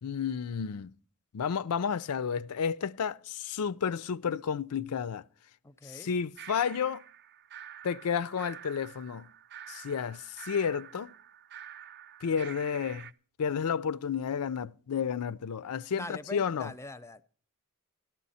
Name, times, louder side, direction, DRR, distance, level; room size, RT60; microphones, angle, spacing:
voice 1, 0.0-0.9 1.3-5.2 5.8-7.0 7.8-9.3 9.7-11.1 12.2-13.1 13.4-16.7, left 7 dB, 85° left, 0.5 m, -31 dB
voice 2, 5.6-6.1 15.9-17.2, left 2 dB, 10° left, 0.5 m, -43 dB
sound 1, 6.4-13.1, right 10 dB, 45° right, 0.5 m, -48 dB
13.5 x 12.5 x 4.1 m
head